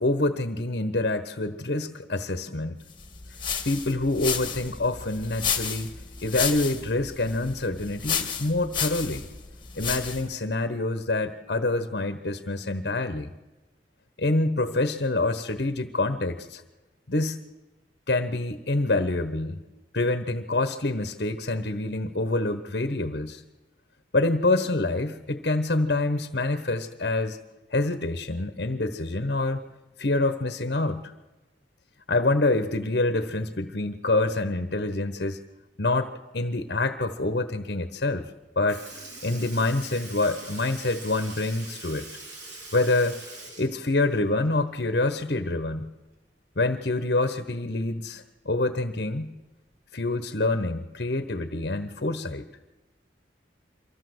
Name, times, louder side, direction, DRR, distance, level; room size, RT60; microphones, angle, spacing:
voice 1, 0.0-2.8 3.6-5.9 6.2-9.2 9.8-13.3 14.2-16.6 17.1-17.4 18.1-19.6 19.9-23.4 24.1-27.4 27.7-29.6 30.0-31.1 32.1-35.4 35.8-38.3 38.6-42.0 42.7-43.2 43.6-45.9 46.6-49.3 49.9-52.4, left 2 dB, 60° left, 10 dB, 1.2 m, -26 dB
sound 1, 3.0-10.4, left 7 dB, 25° left, 2.0 m, -32 dB
Sink (filling or washing) / Liquid, 38.2-38.4 38.7-44.8 45.1-45.2 46.8-46.9 47.8-47.9 48.7-48.9 49.8-49.9, right 2 dB, 80° right, 6.0 m, -43 dB
24.0 x 15.0 x 8.0 m, 1.2 s
head